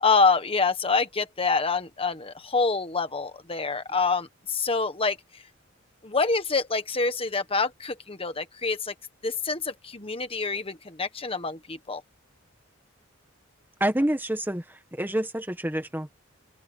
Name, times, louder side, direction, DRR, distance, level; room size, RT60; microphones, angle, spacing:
voice 1, 0.0-5.2 6.0-8.9 9.2-12.0, left 4 dB, 25° left, 1.4 m, -26 dB
voice 2, 13.8-16.1, right 1 dB, 10° right, 1.5 m, -28 dB
open air
head